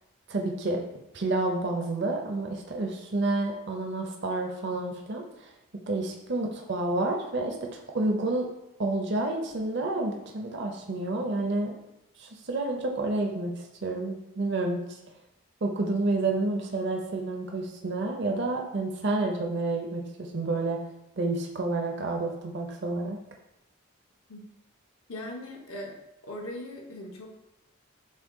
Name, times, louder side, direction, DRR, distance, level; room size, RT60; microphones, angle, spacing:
voice 1, 0.3-0.8 1.1-5.2 5.9-8.5 8.8-11.8 12.2-14.8 15.6-20.8 21.2-23.2, right 2 dB, 55° right, 2 dB, 0.6 m, -29 dB
voice 2, 25.1-26.0 26.2-27.3, left 1 dB, 80° left, 0 dB, 0.8 m, -39 dB
6.2 x 2.2 x 3.6 m, 0.88 s
head